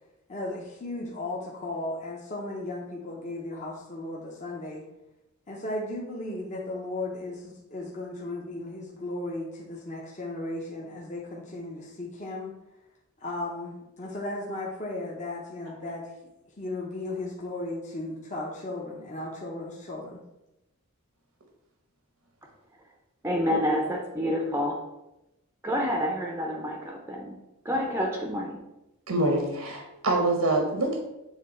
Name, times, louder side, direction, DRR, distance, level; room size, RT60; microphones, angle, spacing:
voice 1, 0.3-4.9 5.5-12.5 13.2-16.1 16.6-20.2, left 2 dB, 35° left, -3 dB, 0.8 m, -35 dB
voice 2, 23.2-24.8 25.6-27.4 27.6-28.6, equal, 10° right, 0 dB, 0.5 m, -28 dB
voice 3, 29.1-31.0, right 2 dB, 85° right, 2 dB, 1.0 m, -25 dB
7.4 x 3.3 x 4.3 m, 0.94 s
head